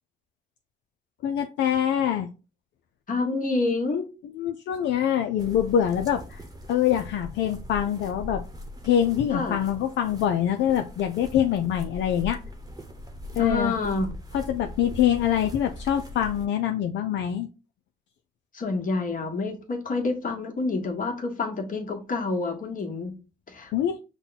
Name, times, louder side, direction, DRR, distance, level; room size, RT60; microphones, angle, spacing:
voice 1, 1.2-2.3 4.2-6.4 6.7-8.4 8.8-12.4 13.3-13.7 14.3-17.5 23.7-24.0, left 10 dB, 70° left, 5 dB, 0.5 m, -24 dB
voice 2, 3.1-4.1 9.3-9.6 13.4-14.1 18.5-23.1 23.5-23.7, left 3 dB, 45° left, 3 dB, 1.4 m, -28 dB
sound 1, 5.4-16.5, left 1 dB, 20° right, 1.0 m, -40 dB
5.6 x 2.2 x 4.0 m, 0.31 s
supercardioid pair, 65°, 19 cm